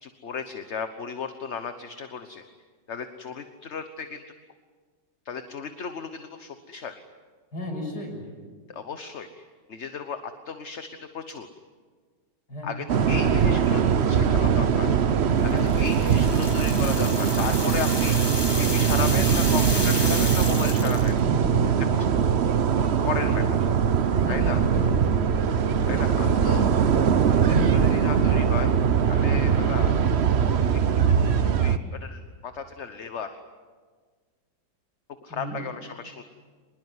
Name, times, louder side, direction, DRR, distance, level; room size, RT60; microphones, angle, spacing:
voice 1, 0.0-2.4 2.9-4.2 5.2-6.9 8.7-11.5 12.6-15.0 15.4-21.2 22.0-22.1 23.0-23.7 24.3-24.6 25.9-26.6 27.3-28.7 29.1-30.1 30.7-33.3 35.2-36.2, left 6 dB, 45° left, 8 dB, 1.3 m, -35 dB
voice 2, 7.5-8.2 12.5-13.2 15.4-15.7 21.2-21.8 24.2-25.2 25.8-26.1 27.5-27.7 29.3-29.5 35.3-35.6, left 1 dB, 65° left, 1 dB, 6.8 m, -34 dB
sound 1, 12.9-31.8, right 7 dB, 50° right, 0.9 m, -21 dB
sound 2, 15.6-21.2, left 2 dB, 15° left, 1.6 m, -32 dB
sound 3, 22.7-23.9 24.5-27.3 27.8-28.0 28.4-28.7 29.1-29.4 29.7-30.0 30.3-30.6, right 3 dB, 65° right, 5.1 m, -41 dB
25.5 x 21.0 x 9.6 m, 1.5 s
omnidirectional pair, 1.9 m